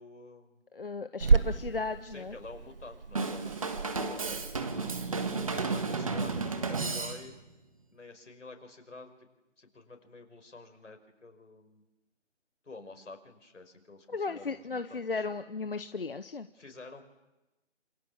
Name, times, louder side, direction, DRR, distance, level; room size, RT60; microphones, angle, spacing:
voice 1, 0.0-0.6 1.4-1.5 2.0-4.4 5.5-7.4 7.9-9.3 9.6-11.8 12.6-15.2 16.5-17.0, left 3 dB, 75° left, 5 dB, 5.5 m, -49 dB
voice 2, 0.7-2.3 3.9-4.1 14.1-16.5, left 4 dB, 50° left, 10 dB, 0.9 m, -36 dB
Growling / Hiss, 1.2-6.4, right 4 dB, 50° right, 1.2 m, -32 dB
Drum kit / Drum, 3.2-7.5, right 4 dB, 30° right, 1.6 m, -33 dB
27.5 x 26.0 x 7.3 m, 1.0 s
figure-of-eight pair, 170°, 37 cm